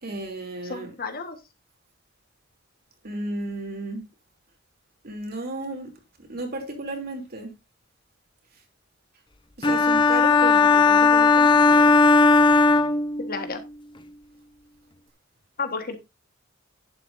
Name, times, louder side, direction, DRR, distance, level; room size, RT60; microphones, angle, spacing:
voice 1, 0.0-0.9 3.0-4.0 5.0-5.9 6.3-7.5 9.6-11.9, right 2 dB, 50° right, 2.9 m, -34 dB
voice 2, 0.6-1.4 13.3-13.6 15.6-16.0, left 4 dB, 50° left, 1.4 m, -31 dB
sound 1, 9.6-13.5, left 4 dB, 25° left, 0.7 m, -17 dB
11.0 x 9.2 x 2.6 m
head